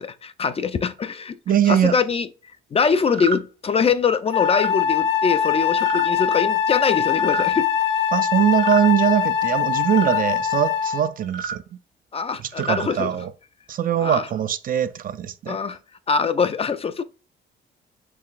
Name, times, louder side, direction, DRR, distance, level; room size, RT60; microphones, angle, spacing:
voice 1, 0.0-1.4 1.7-2.3 2.7-7.7 12.1-13.1 14.0-14.3 15.5-15.8 16.1-17.0, left 6 dB, 30° left, 0.3 m, -23 dB
voice 2, 1.5-2.0 8.1-11.6 12.4-13.3 13.7-15.6, right 10 dB, 45° right, 0.4 m, -21 dB
sound 1, 3.1-3.4 4.3-4.7 5.8-6.1 7.1-7.5 8.5-8.9 9.9-10.2 11.2-11.6 12.4-12.9, right 6 dB, 65° right, 1.2 m, -31 dB
Wind instrument woodwind instrument, 4.3-11.1, left 8 dB, 75° left, 0.6 m, -22 dB
4.6 x 3.2 x 2.4 m
cardioid pair, 90°, 20 cm